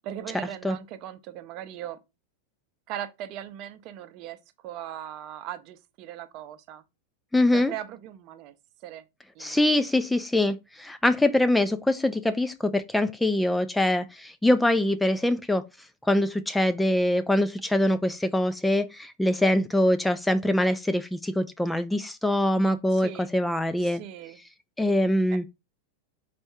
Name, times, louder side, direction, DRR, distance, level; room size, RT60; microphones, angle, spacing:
voice 1, 0.0-2.0 2.9-4.4 4.6-6.8 7.5-8.5 8.8-9.0 9.3-9.7 22.9-23.3 23.8-24.4, right 11 dB, 40° right, 0.6 m, -39 dB
voice 2, 7.3-7.7 9.4-15.7 16.0-24.0 24.8-25.4, left 1 dB, 5° left, 0.3 m, -24 dB
4.2 x 2.6 x 4.6 m
figure-of-eight pair, 90°, 0 cm